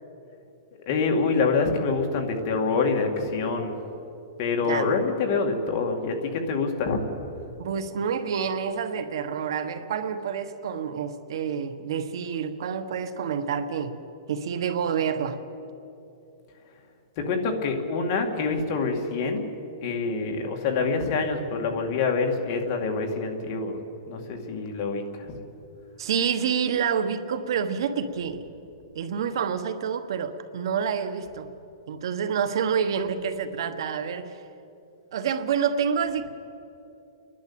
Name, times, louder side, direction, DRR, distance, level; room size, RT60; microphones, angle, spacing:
voice 1, 0.9-3.8 4.4-7.0 17.2-19.5 19.8-23.8 24.1-25.4, left 4 dB, 35° left, 3 dB, 2.3 m, -26 dB
voice 2, 7.6-13.9 14.3-15.4 26.0-28.4 28.9-31.5 31.9-34.4 35.1-36.3, right 7 dB, 65° right, 9 dB, 1.3 m, -28 dB
30.0 x 11.5 x 8.7 m, 2.9 s
hypercardioid pair, 165°, 3 cm